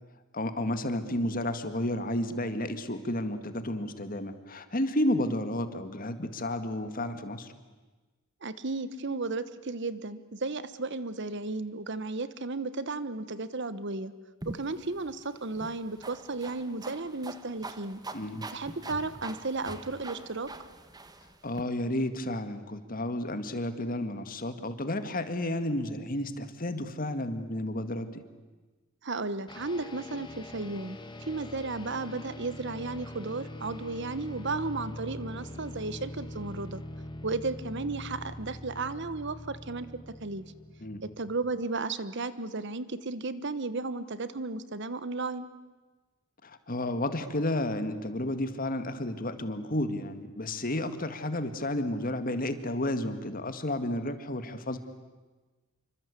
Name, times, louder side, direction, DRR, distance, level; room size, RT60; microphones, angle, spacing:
voice 1, 0.3-7.5 18.1-18.5 21.4-28.2 40.8-41.0 46.4-54.8, left 1 dB, 45° left, 10 dB, 1.9 m, -32 dB
voice 2, 8.4-14.1 14.4-18.0 18.5-20.5 29.0-31.0 31.3-36.8 37.2-39.9 40.2-40.4 41.0-45.5, right 3 dB, 60° right, 14 dB, 1.2 m, -34 dB
sound 1, 14.4-21.6, right 2 dB, 20° right, 1.4 m, -44 dB
sound 2, 29.5-41.7, left 1 dB, 20° left, 2.1 m, -43 dB
27.5 x 24.5 x 8.4 m, 1.3 s
head